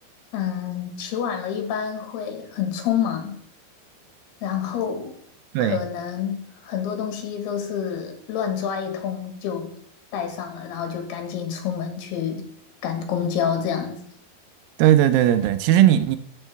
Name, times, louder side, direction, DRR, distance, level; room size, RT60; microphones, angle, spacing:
voice 1, 0.3-3.4 4.4-5.1 5.6-9.8 10.1-12.5 12.8-14.0, left 8 dB, 90° left, 5 dB, 3.4 m, -28 dB
voice 2, 14.8-16.2, right 11 dB, 80° right, 11 dB, 2.2 m, -17 dB
13.5 x 5.5 x 3.4 m, 0.63 s
omnidirectional pair, 4.5 m